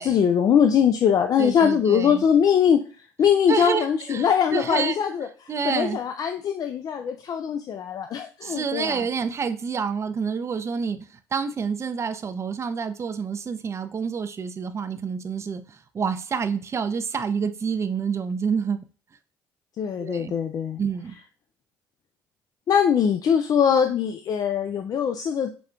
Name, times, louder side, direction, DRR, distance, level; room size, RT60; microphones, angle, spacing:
voice 1, 0.0-2.8 3.2-5.3 5.6-9.0 19.8-20.8 22.7-25.5, left 8 dB, 50° left, 0.3 m, -22 dB
voice 2, 1.4-2.2 3.5-5.0 5.5-6.0 8.4-11.1 11.3-18.8 20.0-20.3 20.8-21.2, right 6 dB, 35° right, 0.4 m, -28 dB
5.0 x 2.2 x 2.4 m
supercardioid pair, 75°, 8 cm